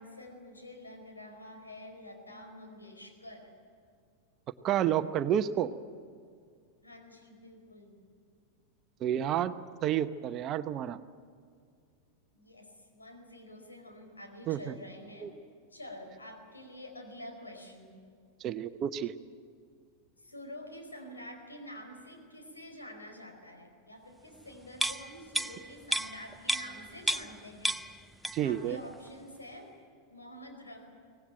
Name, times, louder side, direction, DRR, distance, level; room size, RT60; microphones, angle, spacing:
voice 1, 0.0-3.5 6.8-8.0 12.3-15.3 15.7-18.0 20.2-27.8 28.2-29.7 30.1-30.9, left 1 dB, 80° left, 4 dB, 4.8 m, -48 dB
voice 2, 4.6-5.7 9.0-9.5 9.8-11.0 14.5-14.7 15.2-15.3 18.4-19.1 28.3-28.8, right 10 dB, 35° right, 12 dB, 0.8 m, -30 dB
sound 1, 24.7-27.4 27.6-28.6 28.9-29.1, right 1 dB, ahead, 0.6 m, -33 dB
24.0 x 18.5 x 9.0 m, 2.2 s
figure-of-eight pair, 90°, 0 cm